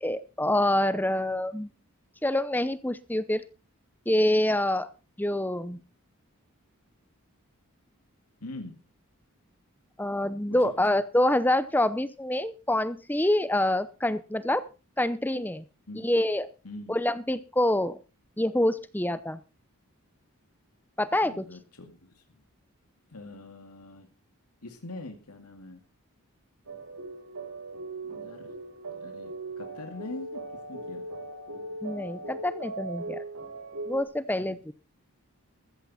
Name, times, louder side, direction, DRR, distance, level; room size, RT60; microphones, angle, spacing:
voice 1, 0.0-1.7 2.2-3.4 4.1-4.9 5.2-5.8 10.0-14.6 15.0-15.7 15.9-16.5 16.9-18.0 18.4-19.4 21.0-21.5 31.8-33.2 33.9-34.7, left 1 dB, 10° left, 14 dB, 0.6 m, -26 dB
voice 2, 8.4-8.8 10.5-10.6 15.9-16.1 16.6-17.0 21.1-22.2 23.1-24.1 24.6-25.8 28.0-28.6 29.0-30.4 30.7-31.2 34.4-34.6, left 2 dB, 90° left, 5 dB, 2.3 m, -43 dB
sound 1, 26.7-34.0, right 2 dB, 90° right, 6.3 m, -39 dB
14.5 x 14.0 x 4.2 m, 0.33 s
head